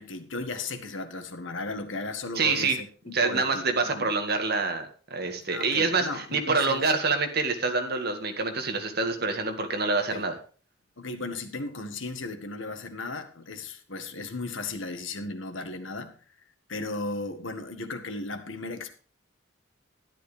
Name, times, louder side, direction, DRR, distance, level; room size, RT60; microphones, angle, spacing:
voice 1, 0.0-4.1 5.5-6.8 10.1-10.2 11.0-16.2 16.7-18.9, left 3 dB, 85° left, 8 dB, 1.7 m, -36 dB
voice 2, 2.4-2.8 3.1-10.4, right 4 dB, 55° right, 5 dB, 2.0 m, -26 dB
12.5 x 11.0 x 3.5 m, 0.39 s
head